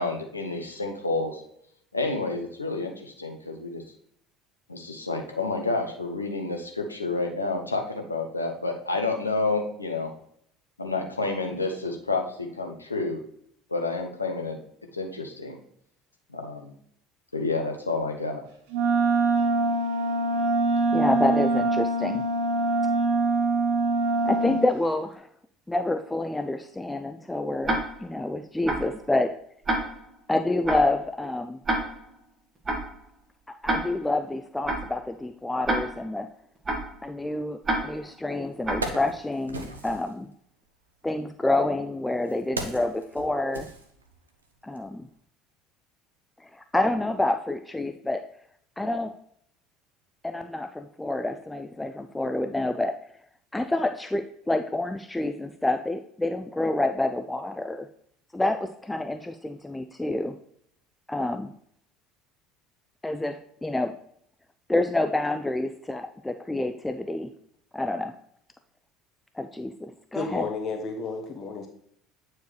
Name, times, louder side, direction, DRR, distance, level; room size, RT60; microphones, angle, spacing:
voice 1, 0.0-1.4 1.9-3.8 4.7-10.1 10.8-13.2 13.7-14.6 14.9-15.6 16.3-16.7 17.3-18.4, left 3 dB, 90° left, 3 dB, 0.9 m, -29 dB
Wind instrument woodwind instrument, 18.7-24.7, right 3 dB, 65° right, 0.9 m, -24 dB
voice 2, 20.9-22.2 24.2-25.3 25.7-29.4 30.3-31.6 33.6-36.3 37.0-40.3 41.0-43.7 44.6-45.1 46.4-48.2 48.8-49.1 50.2-53.0 53.5-57.9 58.3-60.4 61.1-61.5 63.0-64.0 64.7-67.3 67.7-68.1 69.4-70.5, left 2 dB, 10° left, 8 dB, 0.4 m, -28 dB
Tick-tock, 27.6-28.1 28.7-29.0 29.7-30.1 30.7-31.0 31.7-32.1 32.7-33.0 33.7-34.1 34.7-35.0 35.7-36.1 36.7-37.0 37.6-38.1 38.6-39.0, right 1 dB, 25° right, 1.7 m, -29 dB
Wood, 38.0-38.1 38.5-40.1 41.1-44.4 44.8-44.9, right 2 dB, 85° right, 0.7 m, -37 dB
voice 3, 70.1-71.7, left 4 dB, 40° left, 3 dB, 1.1 m, -32 dB
9.0 x 4.6 x 3.2 m, 0.67 s
figure-of-eight pair, 65°, 0 cm